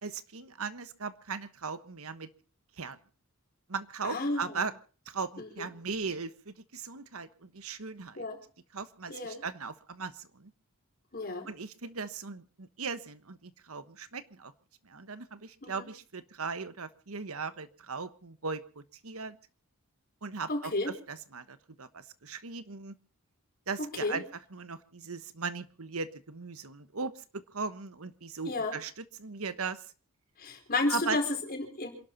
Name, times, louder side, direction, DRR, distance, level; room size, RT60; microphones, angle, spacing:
voice 1, 0.0-2.3 2.8-3.0 3.7-4.7 5.1-8.2 8.7-10.5 11.5-14.5 14.8-19.4 20.2-20.7 21.1-22.9 23.7-24.2 24.5-28.9 29.2-29.8 30.9-31.2, right 4 dB, 80° right, 12 dB, 1.3 m, -38 dB
voice 2, 4.0-4.6 5.4-5.7 8.2-8.4 9.1-9.4 11.1-11.5 15.6-15.9 20.5-20.9 23.8-24.2 28.5-28.7 30.4-31.9, left 2 dB, 45° left, 3 dB, 4.8 m, -32 dB
27.5 x 12.0 x 4.1 m, 0.39 s
head